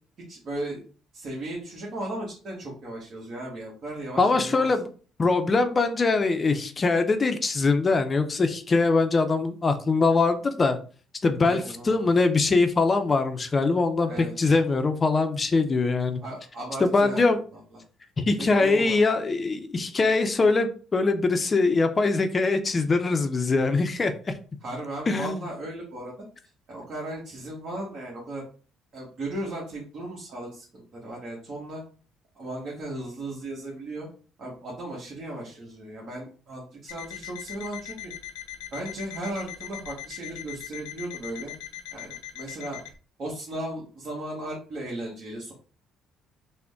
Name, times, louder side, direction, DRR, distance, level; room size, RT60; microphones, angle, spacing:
voice 1, 0.3-0.8 1.1-4.7 11.4-12.0 14.1-14.6 16.2-17.4 18.4-19.1 24.6-26.1 26.7-28.4 28.9-31.8 32.3-34.1 34.4-38.1 38.7-41.5 41.9-42.8 43.2-45.5, right 1 dB, 50° right, -3 dB, 1.2 m, -36 dB
voice 2, 4.2-4.9 5.2-10.8 11.2-16.2 16.8-17.4 18.2-24.3 25.1-25.4, left 3 dB, 30° left, 8 dB, 0.5 m, -22 dB
Alarm, 36.9-42.9, left 11 dB, 90° left, 0.7 m, -40 dB
3.7 x 2.1 x 3.5 m, 0.39 s
supercardioid pair, 80°, 0 cm